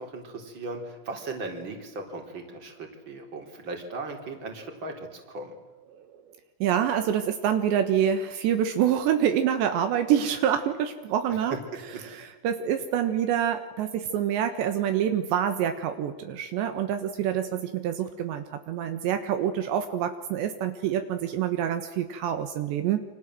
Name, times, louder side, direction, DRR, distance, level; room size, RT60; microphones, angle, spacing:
voice 1, 0.0-5.5 11.3-12.0, right 3 dB, 25° right, 3 dB, 4.3 m, -37 dB
voice 2, 6.6-11.6 12.0-23.0, right 9 dB, 75° right, 7 dB, 3.6 m, -26 dB
29.0 x 26.0 x 7.8 m, 1.2 s
omnidirectional pair, 5.2 m